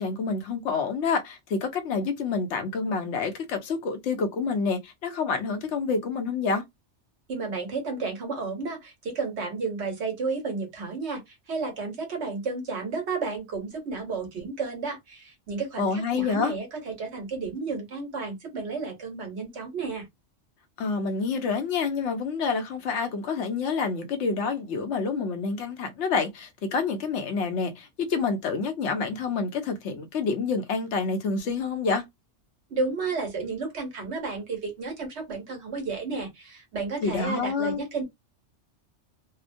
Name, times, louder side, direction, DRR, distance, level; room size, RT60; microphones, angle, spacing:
voice 1, 0.0-6.6 15.8-16.5 20.8-32.0 37.0-37.8, left 4 dB, 75° left, 1.0 m, -28 dB
voice 2, 7.3-20.1 32.7-38.0, right 4 dB, 65° right, 1.2 m, -32 dB
2.8 x 2.1 x 2.5 m
omnidirectional pair, 1.2 m